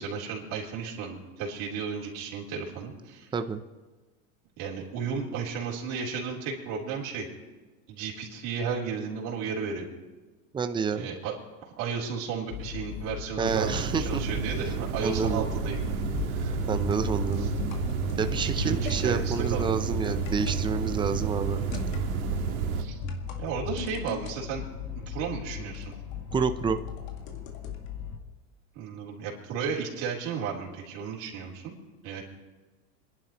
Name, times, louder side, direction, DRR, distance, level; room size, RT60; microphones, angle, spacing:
voice 1, 0.0-3.3 4.6-7.3 7.9-9.9 10.9-11.3 11.8-15.9 16.3-16.6 17.4-17.5 18.6-19.8 22.8-23.0 23.4-24.7 25.1-25.9 28.7-31.7 32.0-32.2, right 6 dB, 50° right, -4 dB, 3.6 m, -34 dB
voice 2, 3.3-3.6 10.5-11.1 13.4-14.4 15.0-15.5 16.7-17.5 18.2-21.6 26.3-26.8, right 5 dB, 10° right, 9 dB, 0.6 m, -29 dB
sound 1, 12.5-28.2, left 9 dB, 85° left, 2.1 m, -39 dB
sound 2, 13.4-22.8, right 7 dB, 80° right, 1.8 m, -31 dB
sound 3, 16.1-19.0 20.0-20.6 21.7-22.2 23.0-24.3 25.7-27.7 28.0-28.1, left 2 dB, 70° left, 2.0 m, -37 dB
26.5 x 11.0 x 3.0 m, 1.3 s
supercardioid pair, 120°, 42 cm